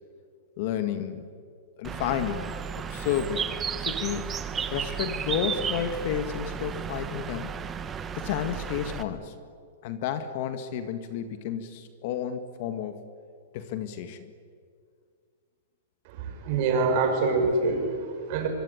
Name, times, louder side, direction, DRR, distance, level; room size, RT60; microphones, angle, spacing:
voice 1, 0.6-1.3 1.8-3.5 3.8-4.3 4.7-7.5 8.1-9.3 9.8-13.0 13.5-14.3, left 9 dB, 45° left, 9 dB, 1.9 m, -31 dB
Bird, 1.8-9.0, right 7 dB, 15° right, 1.2 m, -33 dB
voice 2, 16.2-18.5, right 4 dB, 40° right, 3 dB, 6.2 m, -25 dB
25.0 x 24.0 x 9.8 m, 2.1 s
supercardioid pair, 165°, 0 cm